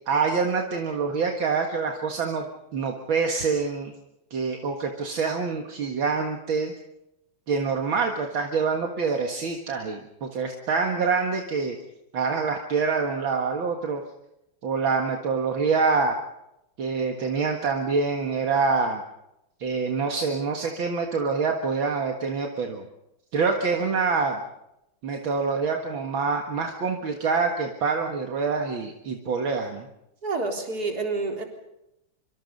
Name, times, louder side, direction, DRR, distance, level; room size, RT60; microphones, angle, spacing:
voice 1, 0.1-3.9 4.3-6.7 7.5-11.8 12.1-14.0 14.6-16.2 16.8-19.0 19.6-22.8 23.3-24.4 25.0-29.9, right 4 dB, 70° right, 3 dB, 2.5 m, -26 dB
voice 2, 30.2-31.4, right 3 dB, 45° right, 2 dB, 4.3 m, -28 dB
25.0 x 24.5 x 5.4 m, 0.87 s
omnidirectional pair, 2.3 m